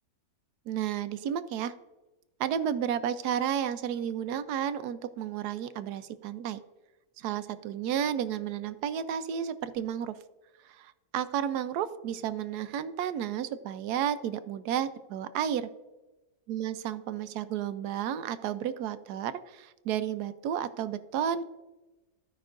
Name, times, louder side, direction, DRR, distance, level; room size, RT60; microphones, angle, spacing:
voice 1, 0.7-1.7 2.4-6.6 7.2-10.2 10.6-15.7 16.5-21.4, right 9 dB, 85° right, 12 dB, 1.2 m, -32 dB
15.5 x 5.6 x 2.5 m, 1.1 s
omnidirectional pair, 1.6 m